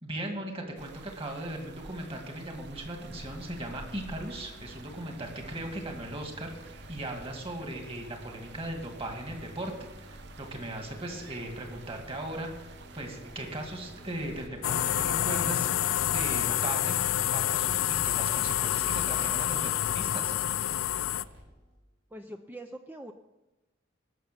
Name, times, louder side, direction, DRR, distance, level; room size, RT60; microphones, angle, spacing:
voice 1, 0.0-17.0 17.3-20.4, right 1 dB, 30° right, 3 dB, 2.2 m, -38 dB
sound 1, 0.8-14.5, right 3 dB, 55° right, 0.7 m, -50 dB
sound 2, 3.0-21.8, equal, 80° right, 5.5 m, -51 dB
sound 3, 14.6-21.2, left 12 dB, 90° left, 0.4 m, -28 dB
voice 2, 22.1-23.1, right 1 dB, 10° right, 5 dB, 0.5 m, -43 dB
18.5 x 6.7 x 6.9 m, 1.0 s
head